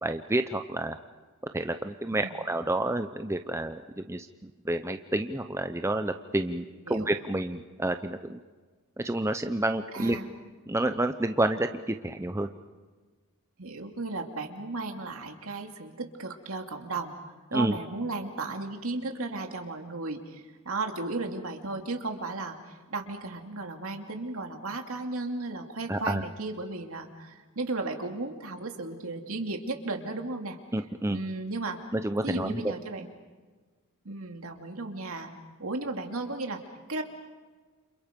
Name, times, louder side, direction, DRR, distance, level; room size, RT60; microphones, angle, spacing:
voice 1, 0.0-1.0 1.5-8.4 9.0-10.2 10.7-12.5 17.5-17.8 25.9-26.2 30.7-31.2 31.9-32.6, right 1 dB, 10° right, 7 dB, 0.7 m, -29 dB
voice 2, 9.9-10.3 13.6-17.1 17.5-30.6 31.1-31.8 32.2-33.1 34.0-35.3 35.6-36.6 36.9-37.0, right 3 dB, 70° right, 4 dB, 2.6 m, -35 dB
29.5 x 27.5 x 5.2 m, 1.4 s
head